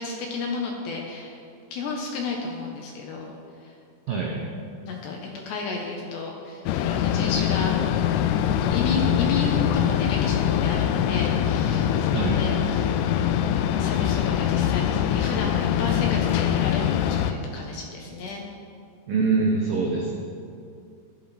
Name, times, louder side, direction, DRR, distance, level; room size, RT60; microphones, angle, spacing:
voice 1, 0.0-1.4 1.7-3.3 4.8-7.7 8.7-13.0 13.8-18.4, left 3 dB, 70° left, 0 dB, 3.0 m, -32 dB
voice 2, 4.1-4.4 12.1-12.4 19.1-20.1, right 4 dB, 85° right, 0 dB, 1.9 m, -24 dB
sound 1, 6.7-17.3, left 10 dB, 90° left, 3.2 m, -23 dB
16.0 x 13.5 x 4.3 m, 2.4 s
omnidirectional pair, 5.9 m